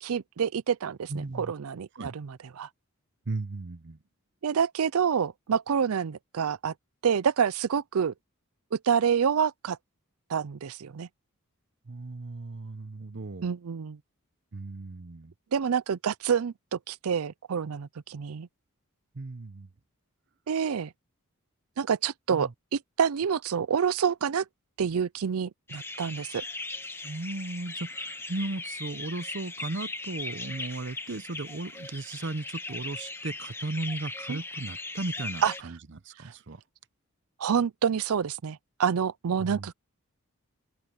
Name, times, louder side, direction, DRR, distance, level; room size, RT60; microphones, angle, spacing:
voice 1, 0.0-2.7 4.4-6.7 7.0-8.1 8.7-9.8 10.3-11.1 13.4-14.0 15.5-18.5 20.5-20.9 21.8-24.4 24.8-26.4 34.3-34.4 35.4-35.5 36.2-36.3 37.4-39.7, right 7 dB, 75° right, 0.5 m, -28 dB
voice 2, 1.1-1.5 1.9-2.1 3.3-4.0 11.9-13.5 14.5-15.3 19.1-19.7 22.3-22.5 27.0-35.8 36.0-36.6 39.4-39.7, right 2 dB, 55° right, 0.8 m, -36 dB
sound 1, 25.7-35.6, left 2 dB, 10° left, 1.4 m, -39 dB
head